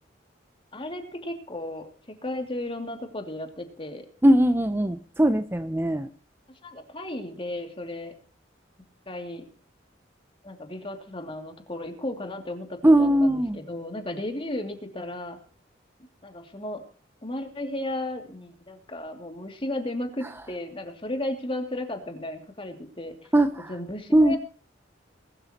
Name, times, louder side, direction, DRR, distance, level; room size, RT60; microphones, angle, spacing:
voice 1, 0.7-1.9 2.2-4.1 6.6-8.1 9.1-9.4 10.4-15.4 16.2-16.8 17.2-23.3 23.7-24.4, left 1 dB, 30° left, 4 dB, 2.7 m, -34 dB
voice 2, 4.2-6.1 12.8-13.6 23.3-23.7 24.1-24.4, right 1 dB, 10° right, 9 dB, 0.7 m, -20 dB
21.5 x 12.5 x 3.0 m, 0.41 s
head